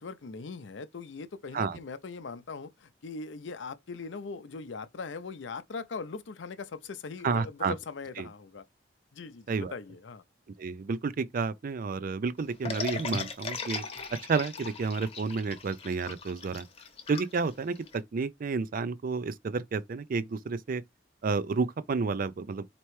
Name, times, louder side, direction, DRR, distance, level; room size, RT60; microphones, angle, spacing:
voice 1, 0.0-8.6 9.1-10.2, left 4 dB, 70° left, 0.5 m, -40 dB
voice 2, 7.2-7.7 8.2-8.3 9.5-9.7 10.6-13.8 14.3-16.7 17.1-17.8 18.1-20.8 21.2-22.7, right 4 dB, 45° right, 0.4 m, -30 dB
sound 1, 12.6-18.0, left 4 dB, 30° left, 0.9 m, -38 dB
4.4 x 2.9 x 3.1 m
head